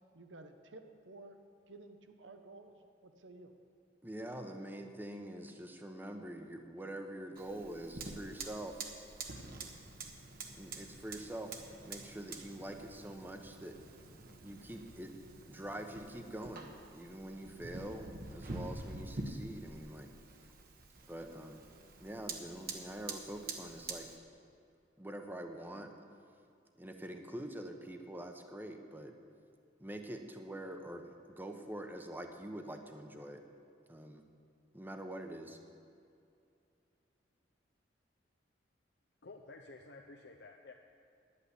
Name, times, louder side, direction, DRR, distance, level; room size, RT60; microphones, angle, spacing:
voice 1, 0.1-1.4 1.7-2.8 3.0-3.5, right 2 dB, 90° right, 7 dB, 0.9 m, -53 dB
voice 2, 4.0-8.9 10.5-11.5 11.8-13.8 14.4-15.1 15.4-20.1 21.1-21.6 22.0-24.1 25.0-25.9 26.7-29.2 29.8-33.4 33.9-34.2 34.7-35.6, right 1 dB, 10° right, 5 dB, 0.9 m, -45 dB
Fire, 7.3-24.2, right 3 dB, 55° right, 1.2 m, -47 dB
voice 3, 39.2-40.7, left 3 dB, 65° left, 1 dB, 0.7 m, -52 dB
11.0 x 8.5 x 8.2 m, 2.5 s
head